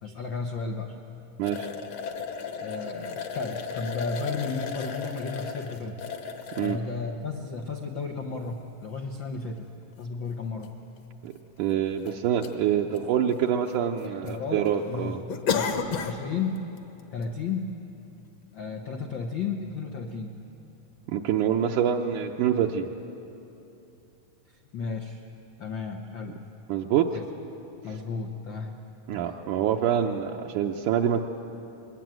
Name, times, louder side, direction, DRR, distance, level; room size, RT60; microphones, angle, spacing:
voice 1, 0.0-1.0 2.6-6.0 6.6-9.7 10.0-10.7 14.0-15.2 15.5-16.7 17.1-17.8 18.5-20.3 24.5-25.2 25.6-26.4 27.1-27.2 27.8-28.8, left 4 dB, 85° left, 3 dB, 1.0 m, -33 dB
sound 1, 1.4-6.8 7.5-7.6 9.2-9.3 9.6-9.7 10.6-10.7 11.0-11.1 11.7-12.1 12.4-12.6 12.9-13.7 14.0-14.3 14.6-14.7 15.3-16.2 16.6-16.8 17.2-17.3, left 6 dB, 60° left, 1.9 m, -33 dB
voice 2, 11.6-15.2 21.1-22.9 26.7-27.1 29.1-31.2, right 9 dB, 75° right, 0 dB, 2.2 m, -26 dB
21.5 x 20.5 x 9.1 m, 2.9 s
omnidirectional pair, 3.8 m